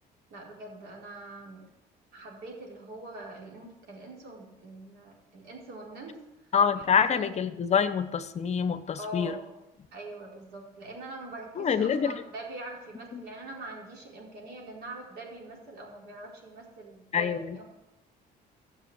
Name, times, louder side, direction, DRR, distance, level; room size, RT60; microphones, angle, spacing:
voice 1, 0.3-1.6 2.1-6.2 6.7-6.8 7.1-7.7 9.0-9.6 9.9-17.6, right 1 dB, 70° right, -2 dB, 4.6 m, -43 dB
voice 2, 6.5-9.3 11.6-12.2 13.1-13.2 17.1-17.6, left 7 dB, 40° left, 12 dB, 0.8 m, -26 dB
14.0 x 7.2 x 8.1 m, 0.95 s
cardioid pair, 110°, 17 cm